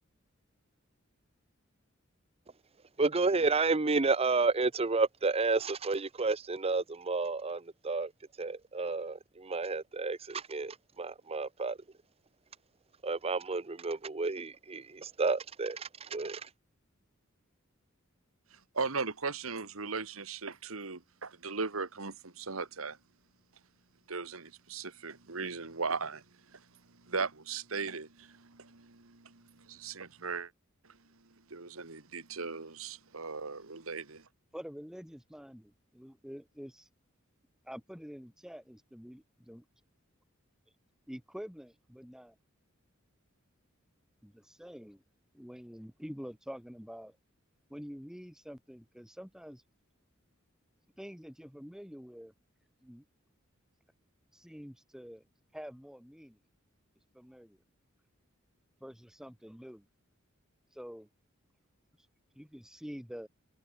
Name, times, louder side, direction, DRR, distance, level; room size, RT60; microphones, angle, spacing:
voice 1, 3.0-8.1 8.4-11.8 13.0-16.5, right 3 dB, 30° right, 0.7 m, -31 dB
voice 2, 18.5-23.0 24.1-26.2 26.5-30.5 30.8-31.0 31.5-34.3, right 4 dB, 85° right, 1.9 m, -38 dB
voice 3, 34.5-36.9 37.6-39.6 41.1-42.4 44.2-45.0 45.3-47.2 47.7-49.6 51.0-52.3 52.8-53.0 54.3-55.3 55.5-56.4 57.1-57.6 58.8-59.9 60.7-61.1 62.3-63.3, equal, 5° right, 2.1 m, -47 dB
head